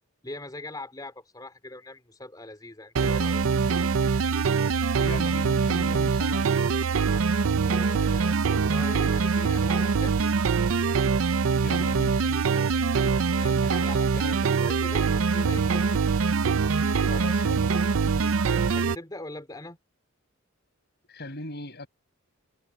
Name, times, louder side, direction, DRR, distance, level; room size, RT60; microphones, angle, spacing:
voice 1, 0.2-3.4 7.6-10.2 13.3-16.0 18.4-19.8, left 2 dB, 20° left, 2.9 m, -41 dB
sound 1, 3.0-19.0, right 5 dB, 70° right, 0.5 m, -24 dB
voice 2, 4.7-6.7 11.6-12.7 14.2-14.5 17.1-17.9 21.1-21.9, left 2 dB, 50° left, 6.9 m, -39 dB
head